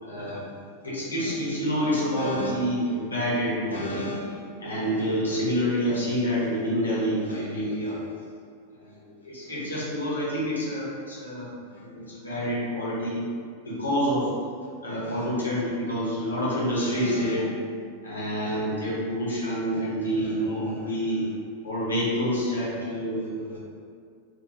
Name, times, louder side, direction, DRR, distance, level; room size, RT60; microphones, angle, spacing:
voice 1, 0.0-8.0 8.8-13.2 13.6-14.3 14.8-17.5 18.0-21.2 21.6-23.6, equal, 75° left, -7 dB, 0.8 m, -28 dB
2.3 x 2.3 x 2.8 m, 2.1 s
figure-of-eight pair, 90°, 0 cm